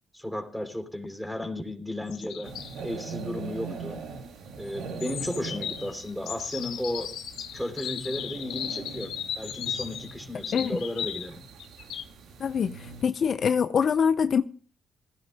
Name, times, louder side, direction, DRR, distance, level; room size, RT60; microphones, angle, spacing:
voice 1, 0.1-2.5 2.8-4.0 4.6-7.1 7.5-11.4, left 1 dB, ahead, 3.1 m, -34 dB
sound 1, 2.1-2.8 5.0-11.3 11.6-12.0, left 9 dB, 90° left, 1.6 m, -36 dB
sound 2, 2.4-13.0, right 5 dB, 85° right, 3.5 m, -42 dB
voice 2, 12.4-12.7 13.0-14.4, left 7 dB, 55° left, 0.7 m, -24 dB
20.0 x 15.0 x 2.2 m
cardioid pair, 100°, 0 cm